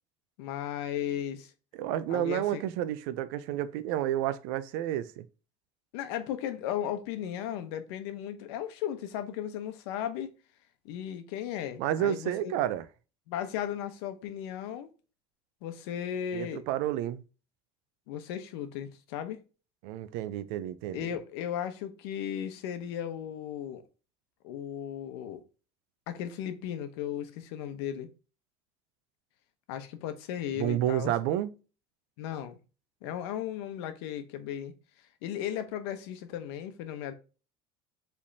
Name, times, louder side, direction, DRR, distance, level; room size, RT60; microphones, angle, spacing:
voice 1, 0.4-1.5 2.1-2.6 5.9-10.3 10.8-12.5 13.3-14.9 15.6-16.6 18.1-19.4 20.9-23.8 24.4-25.4 26.1-28.1 29.7-31.1 32.2-32.6 33.0-34.7 35.2-37.1, left 10 dB, 90° left, 0.9 m, -36 dB
voice 2, 1.7-5.2 11.8-12.9 16.3-17.2 19.8-21.1 30.6-31.5, right 12 dB, 75° right, 0.5 m, -30 dB
5.2 x 3.5 x 2.7 m
cardioid pair, 155°, 13 cm